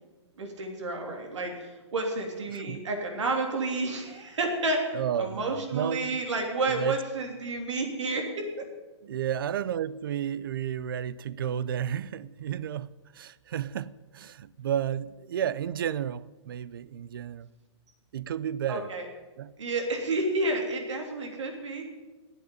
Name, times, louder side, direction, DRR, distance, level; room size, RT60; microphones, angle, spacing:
voice 1, 0.4-8.5 18.7-19.0 19.6-21.9, right 2 dB, 85° right, 3.1 m, -30 dB
voice 2, 2.5-2.8 4.9-6.2 6.7-7.0 9.0-17.5 18.1-18.9 19.4-19.5, right 9 dB, 50° right, 0.4 m, -32 dB
10.5 x 8.0 x 9.4 m
hypercardioid pair, 180°, 15 cm